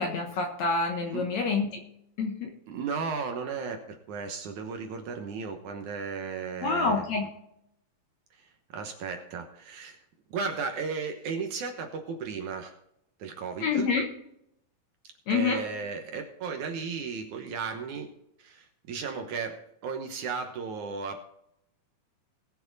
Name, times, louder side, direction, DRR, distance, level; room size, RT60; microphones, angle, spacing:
voice 1, 0.0-1.7 2.2-2.5 6.6-7.2 13.6-14.1 15.3-15.6, left 4 dB, 60° left, 3 dB, 2.1 m, -27 dB
voice 2, 2.7-7.0 8.4-10.0 10.3-12.7 13.2-13.9 15.3-18.1 18.4-21.2, right 5 dB, 65° right, 5 dB, 2.2 m, -35 dB
20.0 x 6.7 x 4.0 m, 0.78 s
omnidirectional pair, 4.3 m